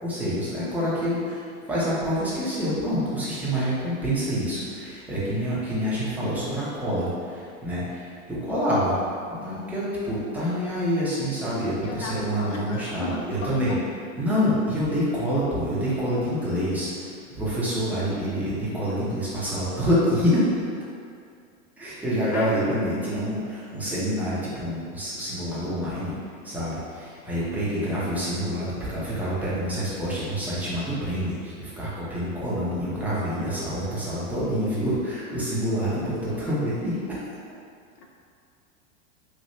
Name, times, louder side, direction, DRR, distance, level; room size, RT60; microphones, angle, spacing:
voice 1, 0.0-8.9 9.3-13.7 14.2-20.5 21.8-26.1 26.4-37.3, equal, 5° right, -10 dB, 0.8 m, -27 dB
voice 2, 0.6-1.0 11.8-13.8 22.3-22.8 38.0-38.1, left 3 dB, 45° left, 0 dB, 0.5 m, -35 dB
3.2 x 2.6 x 2.7 m, 2.3 s
hypercardioid pair, 115°, 41 cm